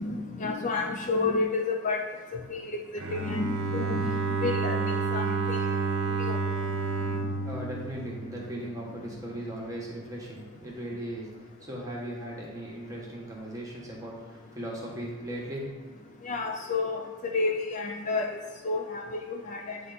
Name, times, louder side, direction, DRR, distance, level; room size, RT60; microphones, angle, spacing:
voice 1, 0.0-2.0 2.3-5.6 6.1-6.4 7.1-7.2 16.2-18.4 18.6-19.8, left 3 dB, 35° left, 1 dB, 0.4 m, -31 dB
Bowed string instrument, 3.0-8.9, right 4 dB, 60° right, 0.7 m, -30 dB
voice 2, 7.4-11.3 11.6-15.7, right 1 dB, 15° right, -4 dB, 1.2 m, -38 dB
9.4 x 3.3 x 4.0 m, 1.4 s
head